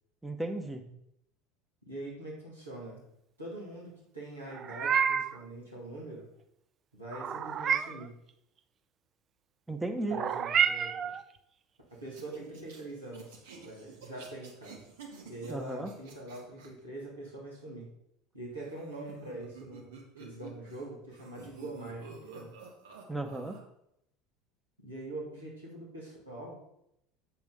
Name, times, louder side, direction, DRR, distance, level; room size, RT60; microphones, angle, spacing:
voice 1, 0.2-0.8 9.7-10.2 15.5-15.9 23.1-23.5, right 2 dB, 10° right, 4 dB, 1.1 m, -34 dB
voice 2, 1.8-3.1 3.4-6.3 6.9-8.2 10.1-11.1 11.9-14.9 15.2-17.9 18.3-22.5 24.8-26.6, right 2 dB, 85° right, -5 dB, 2.6 m, -43 dB
Meow, 4.5-5.4 7.1-8.1 10.1-11.2, right 7 dB, 35° right, 0.4 m, -29 dB
sound 1, 12.1-16.7 18.5-20.8 21.1-23.6, right 5 dB, 65° right, 1.4 m, -50 dB
7.9 x 7.0 x 4.0 m, 0.78 s
figure-of-eight pair, 70°, 0 cm